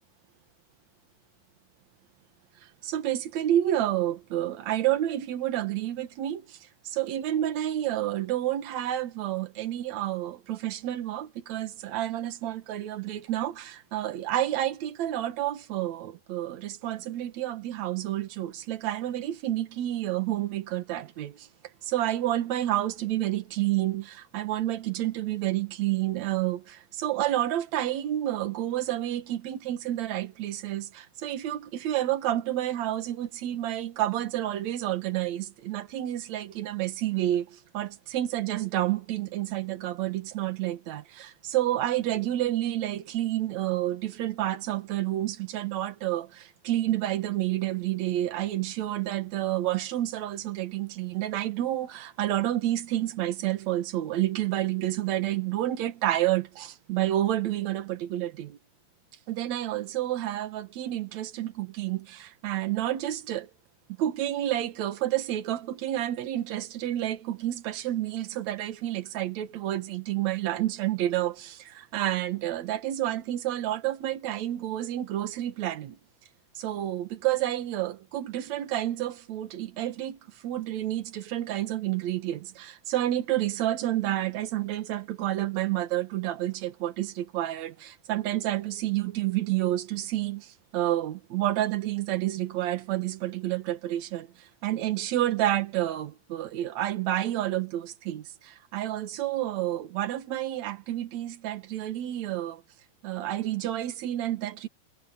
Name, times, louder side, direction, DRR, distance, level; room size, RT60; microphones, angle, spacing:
voice 1, 2.8-6.6 6.8-21.5 21.8-58.6 59.3-63.5 64.0-76.0 76.6-102.6 103.0-104.7, right 13 dB, 60° right, 2.1 m, -29 dB
omnidirectional pair, 4.7 m